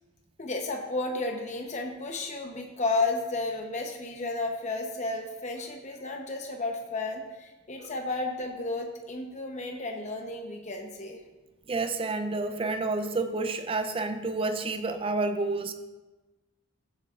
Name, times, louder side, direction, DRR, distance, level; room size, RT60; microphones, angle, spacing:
voice 1, 0.4-11.2, left 3 dB, 35° left, 3 dB, 0.8 m, -32 dB
voice 2, 11.7-15.7, right 3 dB, 25° right, 8 dB, 0.5 m, -29 dB
15.0 x 8.1 x 2.4 m, 1.1 s
head